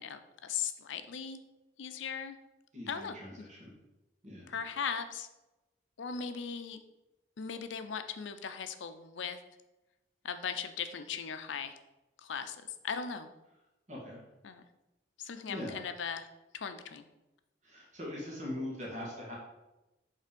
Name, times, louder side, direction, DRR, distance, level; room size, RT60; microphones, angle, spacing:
voice 1, 0.0-1.4 1.8-2.4 2.9-3.2 4.5-5.3 6.0-6.8 7.4-9.4 10.2-11.8 12.2-12.6 12.8-13.3 14.4-14.6 15.2-16.3 16.5-17.0, left 6 dB, 80° left, 10 dB, 0.5 m, -38 dB
voice 2, 2.7-3.7 4.2-4.5 13.9-14.2 15.5-15.8 17.6-19.4, left 1 dB, 40° right, -4 dB, 1.7 m, -41 dB
5.5 x 3.4 x 5.1 m, 1.0 s
head